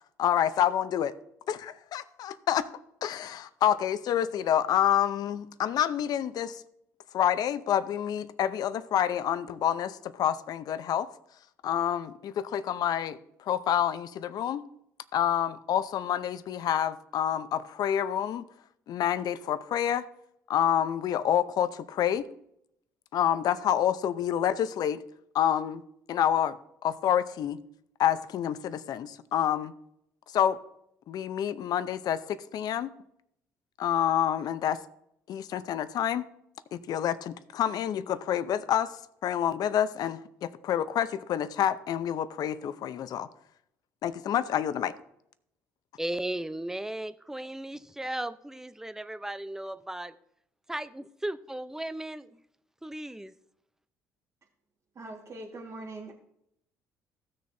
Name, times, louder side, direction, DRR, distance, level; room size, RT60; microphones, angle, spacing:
voice 1, 0.2-1.1 1.5-2.7 3.0-6.6 7.1-11.1 11.6-13.2 13.5-14.6 15.1-18.5 18.9-20.1 20.5-22.3 23.1-25.0 25.3-25.8 26.1-26.6 26.8-27.6 28.0-29.7 30.3-30.6 31.1-32.9 33.8-34.8 35.3-36.3 36.7-38.9 39.2-43.3 44.0-44.9, left 10 dB, 60° left, 0.7 m, -28 dB
voice 2, 46.0-50.1 50.7-52.4 52.8-53.3, right 1 dB, 5° right, 0.6 m, -36 dB
voice 3, 55.0-56.1, right 2 dB, 45° right, 1.7 m, -41 dB
15.5 x 6.6 x 2.7 m
supercardioid pair, 70°, 7 cm